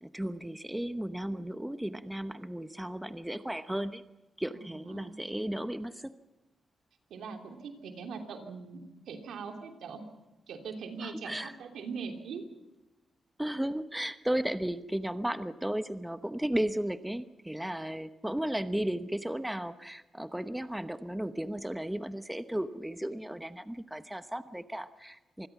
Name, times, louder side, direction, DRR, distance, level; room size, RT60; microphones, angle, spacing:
voice 1, 0.0-4.0 4.4-6.1 11.0-11.5 13.4-25.5, right 1 dB, 5° right, 11 dB, 1.0 m, -34 dB
voice 2, 4.5-5.2 7.1-10.0 10.5-12.4, right 5 dB, 85° right, 4 dB, 3.1 m, -41 dB
26.5 x 20.5 x 6.0 m, 1.1 s
cardioid pair, 85°, 0 cm